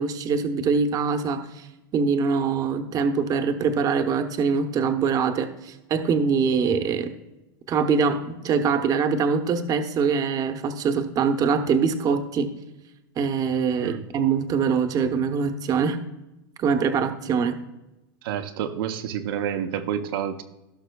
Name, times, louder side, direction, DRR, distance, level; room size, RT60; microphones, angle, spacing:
voice 1, 0.0-1.7 1.9-7.1 7.7-12.5 13.2-16.0 16.6-17.6, right 5 dB, 30° right, 7 dB, 0.8 m, -23 dB
voice 2, 18.2-20.4, right 9 dB, 70° right, 6 dB, 0.7 m, -29 dB
16.5 x 6.0 x 2.3 m, 0.98 s
supercardioid pair, 130°, 13 cm